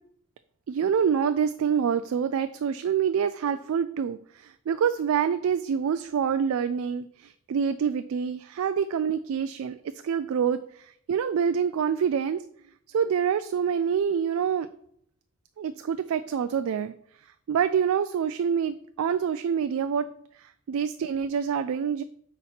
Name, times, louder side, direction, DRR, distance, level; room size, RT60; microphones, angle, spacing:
voice 1, 0.7-12.4 12.9-14.7 15.6-16.9 17.2-20.1 20.3-22.0, right 7 dB, 70° right, 11 dB, 0.3 m, -26 dB
8.1 x 3.1 x 5.6 m, 0.69 s
head